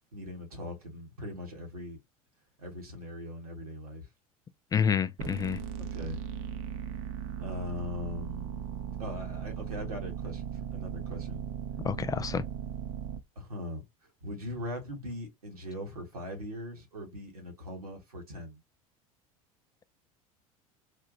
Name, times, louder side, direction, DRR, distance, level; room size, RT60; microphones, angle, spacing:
voice 1, 0.1-2.0 2.6-4.1 5.8-6.2 7.4-8.7 9.0-11.5 13.3-13.8 14.2-18.6, left 1 dB, 80° right, 1.5 m, -40 dB
voice 2, 4.7-5.6 11.8-12.4, left 7 dB, 20° left, 0.3 m, -28 dB
sound 1, 5.2-13.2, right 9 dB, 60° right, 0.7 m, -38 dB
4.3 x 2.8 x 2.6 m
figure-of-eight pair, 70°, 19 cm